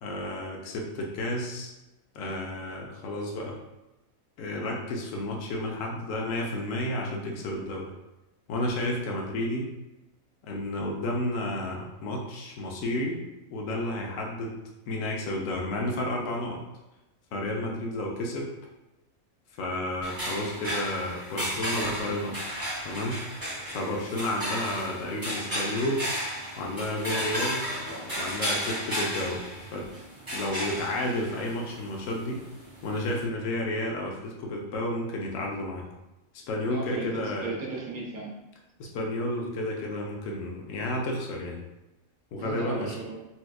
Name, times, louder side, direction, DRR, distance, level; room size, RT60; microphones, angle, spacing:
voice 1, 0.0-1.7 2.1-3.6 4.4-7.9 8.5-9.7 10.4-13.2 13.5-14.6 14.9-16.6 17.3-18.5 19.6-22.4 22.8-23.2 23.7-26.1 26.6-27.7 28.2-29.9 30.3-32.4 32.8-35.9 36.5-37.5 38.8-41.6 42.3-42.9, left 1 dB, 70° left, 0 dB, 1.0 m, -31 dB
sound 1, 20.0-33.2, equal, 20° right, 0.7 m, -34 dB
voice 2, 36.7-38.3 42.4-43.2, right 3 dB, 90° right, -3 dB, 1.1 m, -36 dB
4.2 x 2.3 x 2.2 m, 0.97 s
omnidirectional pair, 1.5 m